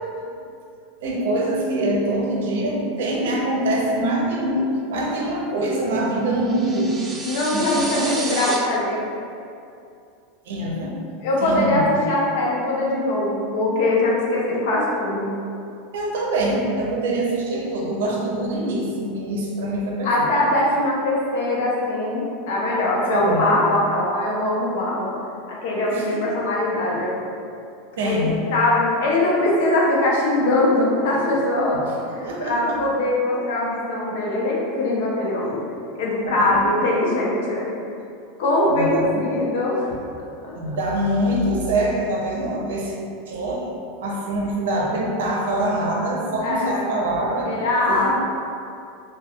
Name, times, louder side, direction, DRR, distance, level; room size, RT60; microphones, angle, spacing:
voice 1, 1.0-7.0 7.5-8.7 10.5-11.0 11.4-11.8 15.9-20.3 23.1-23.5 25.9-26.3 28.0-28.4 32.2-32.9 36.2-36.7 38.7-39.2 40.5-42.9 43.3-43.6 44.0-47.5 47.9-48.1, right 1 dB, 85° right, -1 dB, 0.5 m, -24 dB
sound 1, 6.5-8.6, right 3 dB, 20° right, 0.3 m, -31 dB
voice 2, 7.2-9.0 11.2-15.3 20.0-25.1 25.5-27.2 28.0-31.8 32.1-35.6 36.0-37.7 38.4-39.9 40.4-40.5 46.4-47.0 47.5-48.1, left 1 dB, 70° left, -4 dB, 0.6 m, -22 dB
3.5 x 2.2 x 2.2 m, 2.5 s
supercardioid pair, 150°, 0 cm